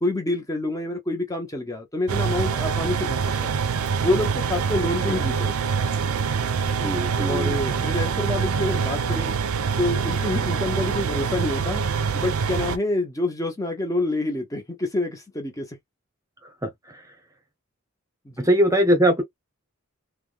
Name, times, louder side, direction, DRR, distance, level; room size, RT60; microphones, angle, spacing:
voice 1, 0.0-3.6 4.0-5.6 7.2-9.3 9.8-15.8 18.3-18.5, left 2 dB, 15° left, 0.7 m, -27 dB
sound 1, 2.1-12.8, right 6 dB, 85° right, 0.5 m, -25 dB
voice 2, 6.8-7.8 16.6-17.0 18.4-19.2, equal, 15° right, 0.9 m, -22 dB
3.4 x 2.1 x 2.4 m
head